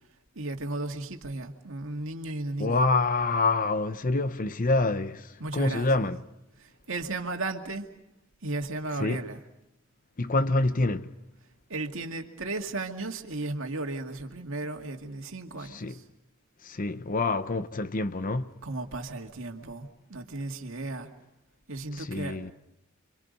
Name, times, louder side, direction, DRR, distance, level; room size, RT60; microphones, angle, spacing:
voice 1, 0.4-2.8 5.4-5.9 6.6-7.9 8.4-9.4 11.7-16.0 18.6-21.1 21.7-22.4, right 2 dB, 70° right, 2.2 m, -35 dB
voice 2, 2.6-6.2 9.0-9.2 10.2-11.2 15.6-16.0 16.6-18.5 21.9-22.5, left 3 dB, 40° left, 0.8 m, -27 dB
30.0 x 25.5 x 5.3 m
head